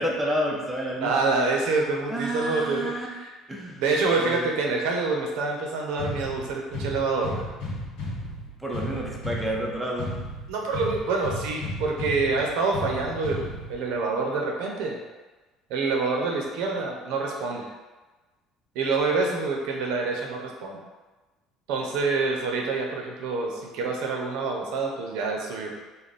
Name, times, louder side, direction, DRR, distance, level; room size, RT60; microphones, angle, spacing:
voice 1, 0.0-1.2 2.1-3.1 3.5-3.8 4.2-4.4 8.6-10.1, equal, ahead, -3 dB, 0.5 m, -29 dB
voice 2, 1.0-3.3 3.7-7.4 10.5-15.0 15.7-17.7 18.7-20.8 21.7-25.7, right 3 dB, 80° right, 0 dB, 0.7 m, -27 dB
sound 1, 6.0-14.0, left 1 dB, 70° left, 1.3 m, -34 dB
3.4 x 2.2 x 4.0 m, 1.2 s
cardioid pair, 150°, 0 cm